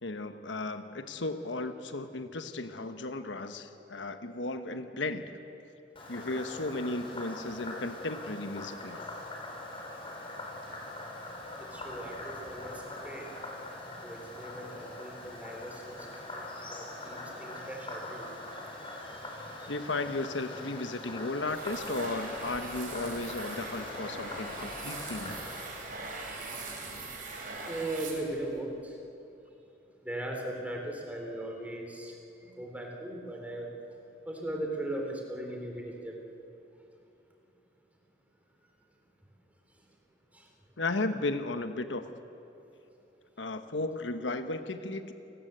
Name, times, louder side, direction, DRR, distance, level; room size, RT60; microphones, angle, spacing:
voice 1, 0.0-5.2 6.1-9.0 19.7-25.4 40.8-42.0 43.4-45.1, left 2 dB, 80° left, 8 dB, 1.3 m, -35 dB
Frog, 6.0-25.6, left 2 dB, 30° left, 5.1 m, -42 dB
voice 2, 11.7-13.2 14.0-18.3 18.6-19.7 27.7-29.0 30.0-32.2 32.4-33.7 34.3-36.2 40.3-40.5, right 1 dB, 10° right, 1 dB, 3.9 m, -39 dB
sound 1, 21.5-28.6, right 3 dB, 50° right, 4.7 m, -41 dB
29.0 x 19.0 x 8.1 m, 2.8 s
head